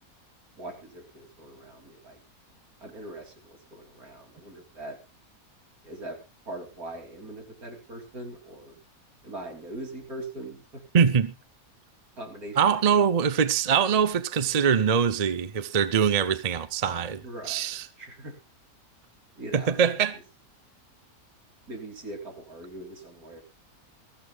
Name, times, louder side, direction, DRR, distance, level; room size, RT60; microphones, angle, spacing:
voice 1, 0.6-2.2 2.8-5.0 5.8-6.2 6.5-8.8 9.2-10.8 12.2-12.9 17.2-17.6 18.0-18.4 19.4-19.8 21.7-23.4, right 1 dB, 75° right, 3.6 m, -41 dB
voice 2, 10.9-11.3 12.6-17.2 17.5-17.9 19.5-20.1, right 7 dB, 40° right, 0.6 m, -23 dB
22.0 x 14.0 x 2.4 m
omnidirectional pair, 1.6 m